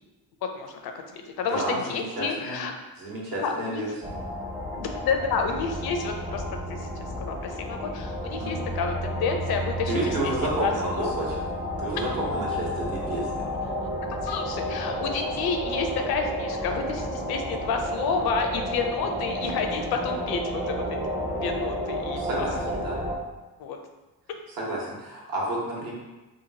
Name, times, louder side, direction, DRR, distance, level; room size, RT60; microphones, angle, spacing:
voice 1, 0.5-2.7 3.2-3.8 4.7-6.4 6.7-6.9 7.2-9.9 10.2-10.3 10.6-10.7 11.0-11.1 14.1-21.0 21.3-22.8 23.6-23.8, left 5 dB, 75° left, 4 dB, 0.5 m, -30 dB
voice 2, 1.5-2.6 3.0-4.1 8.4-8.6 9.9-11.3 11.8-13.5 22.2-23.0 24.5-25.9, right 2 dB, 65° right, -4 dB, 1.0 m, -31 dB
sound 1, 4.0-23.2, equal, 10° right, 0.4 m, -31 dB
2.9 x 2.3 x 2.7 m, 1.1 s
cardioid pair, 85°, 38 cm